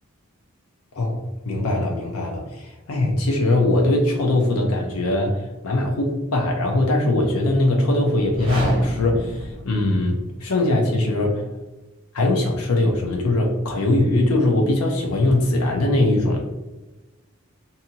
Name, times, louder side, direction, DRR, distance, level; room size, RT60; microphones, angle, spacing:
voice 1, 0.9-11.5 12.1-16.4, left 2 dB, 80° left, 1 dB, 0.6 m, -21 dB
sound 1, 8.2-10.3, right 1 dB, 25° right, 0.9 m, -30 dB
2.7 x 2.6 x 2.7 m, 1.1 s
head